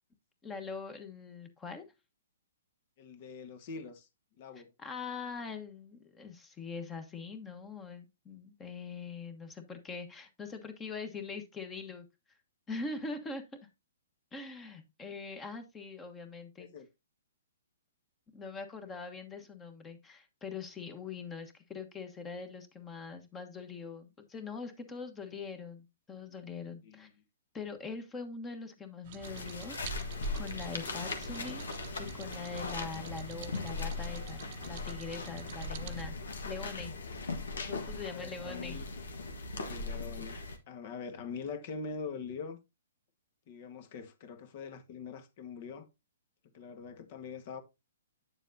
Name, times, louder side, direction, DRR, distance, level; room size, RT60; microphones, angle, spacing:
voice 1, 0.4-1.8 4.8-12.0 12.7-13.4 14.3-16.7 18.3-27.1 27.5-31.6 32.0-36.2 36.4-36.9 37.7-38.8, left 4 dB, 15° left, 1.2 m, -43 dB
voice 2, 3.0-4.1 4.4-4.7 16.6-16.9 26.8-27.1 38.1-38.9 39.7-40.4 40.7-42.6 43.5-45.9 46.5-47.6, left 5 dB, 45° left, 1.4 m, -43 dB
sound 1, 29.0-36.1, right 10 dB, 45° right, 0.8 m, -48 dB
sound 2, 29.2-40.6, left 3 dB, 80° left, 1.4 m, -39 dB
8.5 x 7.2 x 2.7 m
hypercardioid pair, 135°, 0 cm